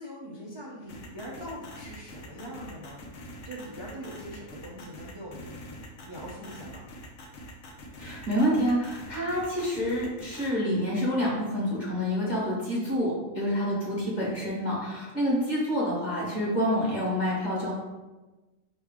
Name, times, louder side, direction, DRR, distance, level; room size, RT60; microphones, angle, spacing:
voice 1, 0.0-3.1 3.4-6.9, equal, 30° right, -6 dB, 0.6 m, -42 dB
sound 1, 0.9-10.5, equal, 65° left, 1.0 m, -44 dB
voice 2, 8.0-17.7, equal, 35° left, -5 dB, 1.3 m, -27 dB
4.5 x 3.1 x 3.6 m, 1.1 s
omnidirectional pair, 1.4 m